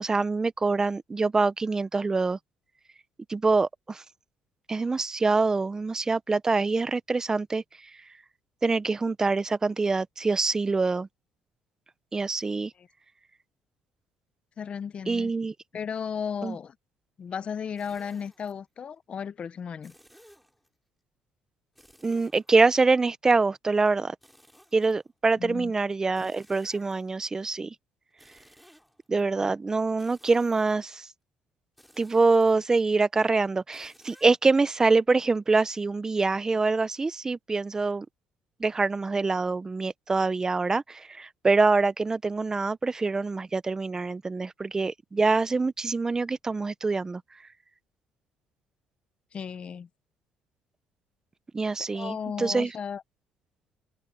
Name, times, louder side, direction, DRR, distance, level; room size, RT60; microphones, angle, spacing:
voice 1, 0.0-2.4 3.3-4.0 4.7-7.6 8.6-11.1 12.1-12.7 15.1-15.5 16.4-16.6 22.0-24.1 24.7-27.7 29.1-31.1 32.0-38.1 38.6-47.2 51.5-52.7, right 3 dB, 20° right, 0.8 m, -25 dB
voice 2, 14.6-15.3 15.7-16.8 17.2-19.9 25.4-25.7 49.3-49.9 51.9-53.0, left 7 dB, 40° left, 0.7 m, -35 dB
sound 1, 17.8-18.5 19.8-20.7 21.7-23.0 24.2-25.4 26.1-27.3 28.1-29.2 30.0-30.9 31.8-32.8 33.7-34.4, equal, ahead, 5.5 m, -57 dB
cardioid pair, 110°, 3 cm